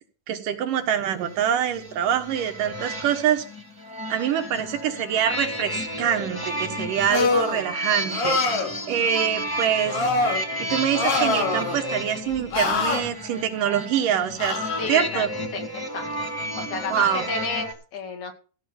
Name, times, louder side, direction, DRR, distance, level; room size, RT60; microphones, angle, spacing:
voice 1, 0.3-3.4 4.1-8.4 8.9-10.0 10.6-14.6 14.9-15.3 16.9-17.2, right 9 dB, 80° right, 6 dB, 3.1 m, -25 dB
sound 1, 1.2-17.7, equal, 10° left, 1.2 m, -32 dB
sound 2, 7.1-7.6 8.1-8.7 9.9-10.4 10.9-11.8 12.5-13.0 14.4-14.9, left 3 dB, 90° left, 5.0 m, -24 dB
voice 2, 14.8-15.2 15.5-16.1 16.6-18.3, left 4 dB, 65° left, 4 dB, 3.5 m, -31 dB
15.5 x 6.1 x 7.1 m, 0.38 s
omnidirectional pair, 3.7 m